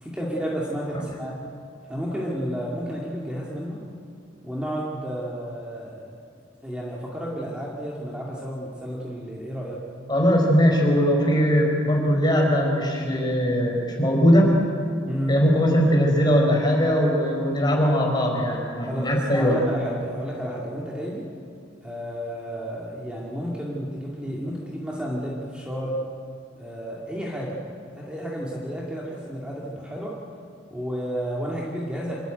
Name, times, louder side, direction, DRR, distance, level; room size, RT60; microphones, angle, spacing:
voice 1, 0.0-1.3 1.9-3.8 4.4-6.1 6.6-9.8 15.1-15.4 18.9-21.3 21.8-26.0 26.5-27.6 28.0-30.1 30.7-32.1, equal, 5° right, -4 dB, 2.3 m, -31 dB
voice 2, 10.1-14.5 15.3-19.6, equal, 20° left, -1 dB, 4.5 m, -20 dB
26.5 x 13.5 x 9.2 m, 2.3 s
head